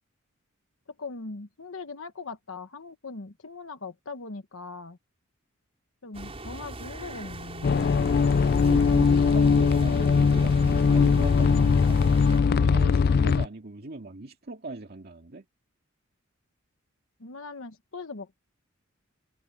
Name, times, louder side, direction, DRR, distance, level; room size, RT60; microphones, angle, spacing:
voice 1, 1.0-5.0 6.0-7.8 13.0-13.4 17.2-18.4, left 3 dB, 70° left, 1.2 m, -40 dB
sound 1, 6.1-12.4, right 2 dB, 30° right, 5.4 m, -41 dB
sound 2, 7.6-13.5, left 5 dB, 50° left, 0.4 m, -21 dB
voice 2, 8.5-12.1 12.6-15.5, right 2 dB, 50° right, 2.2 m, -40 dB
head